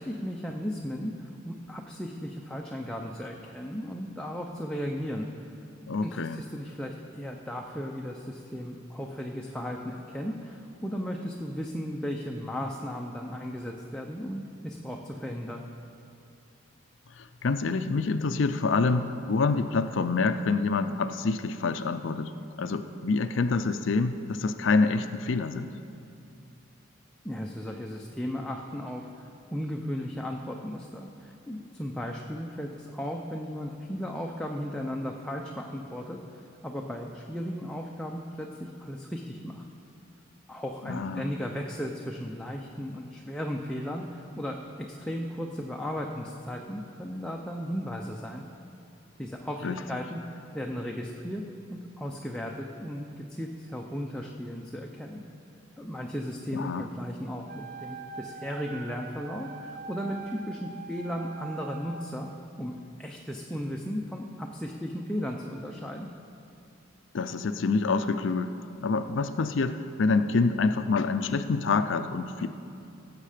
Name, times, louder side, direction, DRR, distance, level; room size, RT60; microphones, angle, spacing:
voice 1, 0.0-5.5 6.0-15.6 27.2-39.6 40.5-48.4 49.2-51.4 51.7-55.3 55.8-62.3 62.6-62.7 63.0-66.1, equal, 5° left, 0 dB, 0.5 m, -36 dB
voice 2, 5.9-6.4 17.2-22.3 22.6-25.7 40.9-41.3 49.6-49.8 56.5-56.9 67.1-68.5 68.8-72.5, left 4 dB, 65° left, 9 dB, 0.5 m, -27 dB
Wind instrument woodwind instrument, 57.4-62.2, right 4 dB, 50° right, 0.6 m, -43 dB
17.0 x 7.4 x 5.0 m, 2.6 s
head